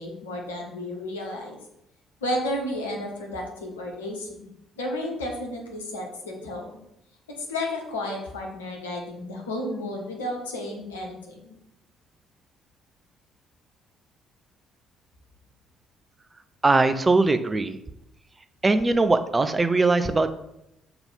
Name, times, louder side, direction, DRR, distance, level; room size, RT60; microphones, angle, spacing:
voice 1, 0.0-1.6 2.2-4.5 4.8-6.7 7.4-11.5, left 1 dB, 75° left, 0 dB, 1.3 m, -32 dB
voice 2, 16.6-17.8 18.6-20.3, right 3 dB, 20° right, 10 dB, 0.6 m, -21 dB
6.9 x 3.9 x 5.7 m, 0.84 s
figure-of-eight pair, 45°, 0 cm